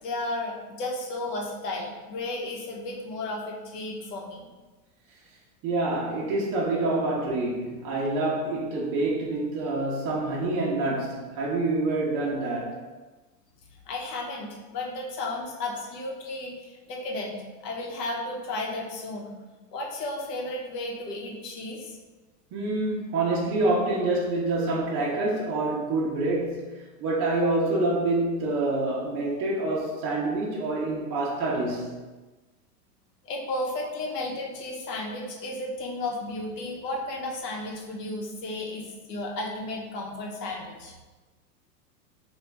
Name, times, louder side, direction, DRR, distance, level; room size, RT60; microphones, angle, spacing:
voice 1, 0.0-4.5 13.7-19.3 19.7-22.0 33.2-40.9, left 2 dB, 80° left, 0.9 m, -33 dB
voice 2, 5.6-12.8 22.5-26.7 27.0-32.0, right 2 dB, 30° right, 0.5 m, -27 dB
2.9 x 2.3 x 3.4 m
supercardioid pair, 130°, 47 cm